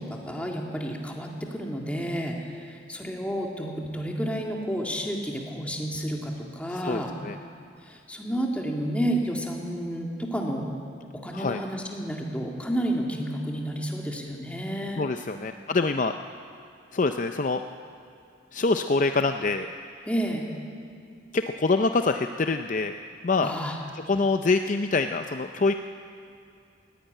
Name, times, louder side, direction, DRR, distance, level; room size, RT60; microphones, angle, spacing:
voice 1, 0.0-7.2 7.8-10.7 11.1-15.0 20.1-20.5 23.4-23.8, equal, 5° left, 0 dB, 2.0 m, -31 dB
voice 2, 6.7-7.4 11.3-11.6 15.0-16.1 16.9-17.6 18.5-19.7 21.3-22.9 23.2-23.5 24.1-25.7, left 3 dB, 40° left, 7 dB, 0.5 m, -25 dB
19.0 x 15.5 x 9.1 m, 2.4 s
head